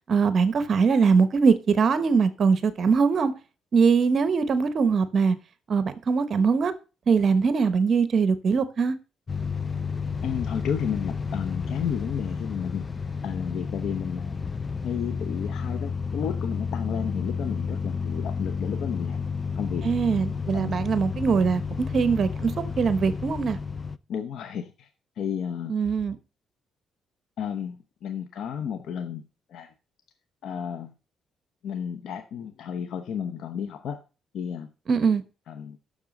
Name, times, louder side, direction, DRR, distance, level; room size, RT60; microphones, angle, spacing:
voice 1, 0.1-3.3 3.7-5.4 5.7-6.7 7.1-9.0 19.8-21.6 21.9-22.5 22.8-23.6 25.7-26.2 34.9-35.2, right 5 dB, 50° right, 1.0 m, -22 dB
sound 1, 9.3-24.0, left 5 dB, 30° left, 0.5 m, -31 dB
voice 2, 10.2-12.8 13.2-14.3 14.8-19.2 19.6-19.9 20.5-20.7 24.1-24.9 25.2-25.7 27.4-27.8 28.0-29.2 29.5-29.7 30.4-30.9 31.6-34.0 34.3-34.7 35.5-35.8, left 8 dB, 75° left, 0.9 m, -32 dB
7.3 x 6.6 x 6.4 m
cardioid pair, 90°, 0 cm